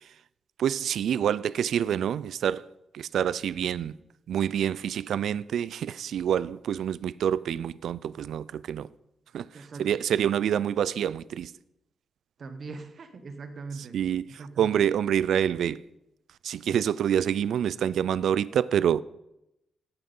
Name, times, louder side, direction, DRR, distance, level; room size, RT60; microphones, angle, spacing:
voice 1, 0.6-2.7 2.9-4.0 4.3-8.9 9.3-9.5 9.8-11.5 13.9-15.8 16.4-19.0, right 9 dB, 70° right, 0.3 m, -27 dB
voice 2, 9.5-10.0 12.4-14.0 14.4-14.9, right 4 dB, 40° right, 0.8 m, -41 dB
15.0 x 5.9 x 5.3 m
wide cardioid pair, 170°, 0 cm